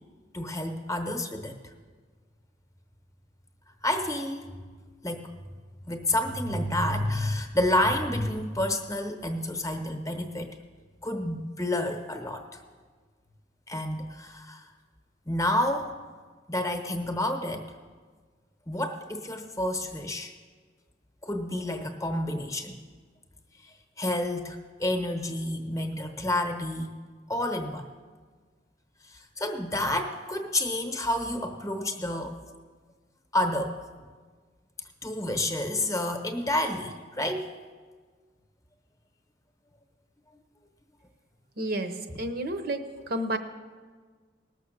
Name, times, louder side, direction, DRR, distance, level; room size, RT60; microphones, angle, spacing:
voice 1, 0.3-1.7 3.8-4.6 5.0-5.5 5.9-10.5 11.0-12.6 13.7-14.7 15.3-15.9 16.5-17.7 18.7-20.3 21.2-22.8 23.6-27.0 27.3-27.9 29.0-32.4 33.3-33.8 35.0-37.5, left 1 dB, 15° left, 5 dB, 1.0 m, -29 dB
voice 2, 41.6-41.9 42.2-42.8 43.1-43.4, right 1 dB, 55° right, 8 dB, 0.9 m, -30 dB
19.0 x 6.8 x 6.5 m, 1.5 s
head